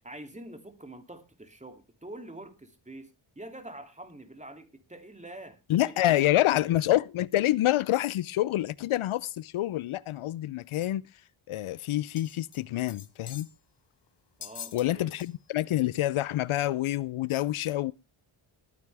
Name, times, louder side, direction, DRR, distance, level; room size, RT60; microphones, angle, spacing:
voice 1, 0.0-6.7 14.4-15.1, right 1 dB, 15° right, 2.7 m, -46 dB
voice 2, 5.7-11.0 11.5-13.5 14.7-17.9, left 14 dB, 75° left, 0.6 m, -27 dB
sound 1, 12.2-12.6 12.9-13.6 14.4-14.9 15.2-15.3 15.9-16.0, left 8 dB, 55° left, 1.1 m, -44 dB
20.5 x 9.5 x 3.4 m
cardioid pair, 80°, 50 cm